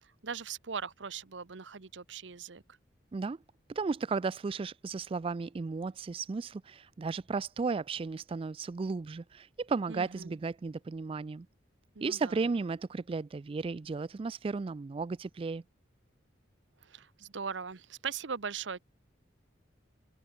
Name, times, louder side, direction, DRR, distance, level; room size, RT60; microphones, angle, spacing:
voice 1, 0.0-2.6 9.9-10.4 11.9-12.4 16.8-18.8, right 6 dB, 75° right, 0.9 m, -40 dB
voice 2, 3.7-11.5 12.0-15.6, right 4 dB, 30° right, 0.3 m, -34 dB
open air
head